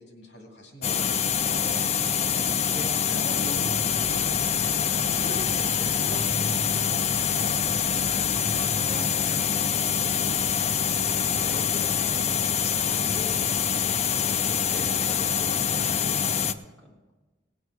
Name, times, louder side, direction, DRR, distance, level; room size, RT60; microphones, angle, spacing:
voice 1, 0.0-1.9 2.4-7.5, equal, 70° left, 1 dB, 2.3 m, -42 dB
sound 1, 0.8-16.5, left 7 dB, 35° left, 0.4 m, -25 dB
sound 2, 3.6-9.1, right 1 dB, 65° right, 0.9 m, -40 dB
voice 2, 8.5-17.1, left 1 dB, 5° left, -6 dB, 2.3 m, -45 dB
18.0 x 7.8 x 4.8 m, 1.2 s
head